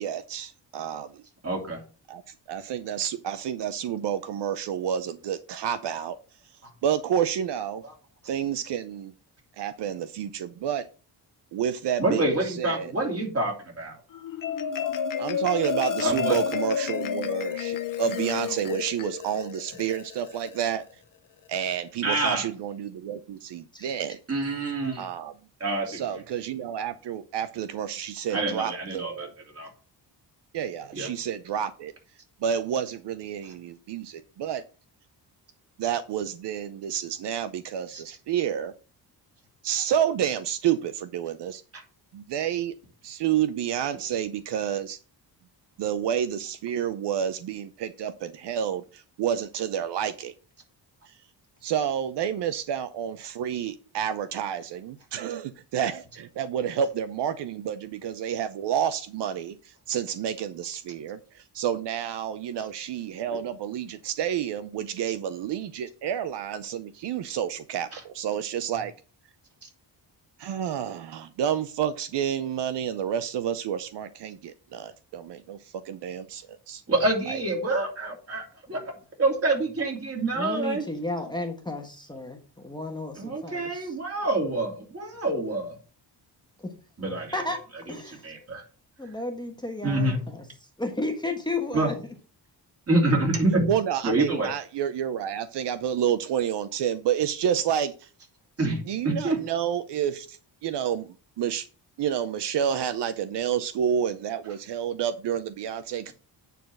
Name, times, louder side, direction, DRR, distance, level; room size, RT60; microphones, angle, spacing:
voice 1, 0.0-1.2 2.1-6.2 6.4-7.8 8.2-9.1 9.6-10.9 11.5-12.9 15.2-20.8 21.5-24.2 25.0-25.3 25.9-29.3 30.5-31.9 32.4-34.6 35.8-38.7 39.6-41.6 42.1-42.7 43.0-45.0 45.8-50.3 51.1-51.2 51.6-68.9 70.4-76.8 77.3-77.4 93.7-98.1 98.9-101.7 102.0-106.1, right 9 dB, 75° right, 12 dB, 0.7 m, -29 dB
voice 2, 1.4-1.8 6.6-6.7 12.0-14.0 16.0-16.4 22.0-22.5 24.3-25.1 25.6-26.0 28.3-29.3 29.5-29.7 30.9-31.1 37.9-38.0 41.7-41.8 63.3-63.4 67.9-68.0 69.6-69.7 76.9-78.8 79.2-80.8 83.2-85.8 87.0-87.4 88.2-88.6 89.8-90.2 91.7-91.9 92.9-93.7 94.0-94.5 98.6-99.4, right 2 dB, 35° right, 0 dB, 3.1 m, -27 dB
Marimba xylophone, 14.1-20.7, left 8 dB, 50° left, 0.9 m, -30 dB
voice 3, 80.3-83.9 86.6-86.7 87.3-87.6 87.9-88.3 89.0-92.0, left 2 dB, 10° left, 3 dB, 1.2 m, -33 dB
9.2 x 4.0 x 6.2 m, 0.37 s
wide cardioid pair, 150°, 42 cm